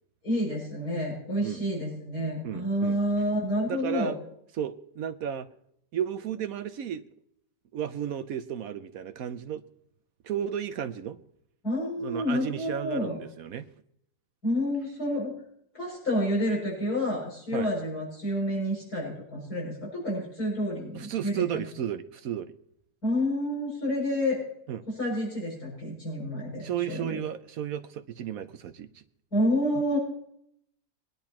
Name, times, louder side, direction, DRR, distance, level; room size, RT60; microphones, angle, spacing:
voice 1, 0.2-4.1 11.6-13.2 14.4-15.3 15.7-21.6 23.0-24.4 24.9-27.2 29.3-30.0, equal, 60° left, -5 dB, 6.9 m, -29 dB
voice 2, 2.4-3.0 3.7-4.2 4.5-5.5 5.9-7.0 7.7-9.6 10.2-11.2 12.0-13.7 17.5-17.7 20.9-22.5 24.7-24.8 26.6-29.0, right 9 dB, 65° right, 11 dB, 1.0 m, -33 dB
23.0 x 10.5 x 2.9 m, 0.73 s
omnidirectional pair, 1.8 m